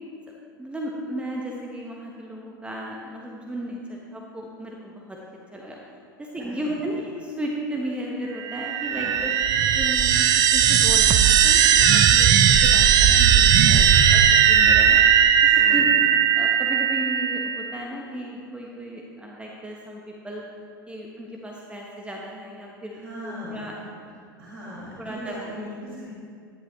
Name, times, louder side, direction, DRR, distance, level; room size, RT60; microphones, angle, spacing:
voice 1, 0.6-5.2 5.5-5.8 6.2-9.3 9.7-12.3 12.6-13.9 14.1-14.2 14.5-15.0 15.4-20.4 20.9-23.7 25.0-25.5, right 1 dB, 10° right, -2 dB, 1.3 m, -34 dB
voice 2, 6.4-6.7 8.8-9.1 13.5-14.4 15.5-16.0 22.9-23.6 24.4-26.1, equal, 75° right, -7 dB, 2.8 m, -39 dB
sound 1, 8.4-17.7, right 8 dB, 35° right, 0.6 m, -17 dB
12.5 x 10.5 x 3.3 m, 2.3 s
figure-of-eight pair, 85°, 12 cm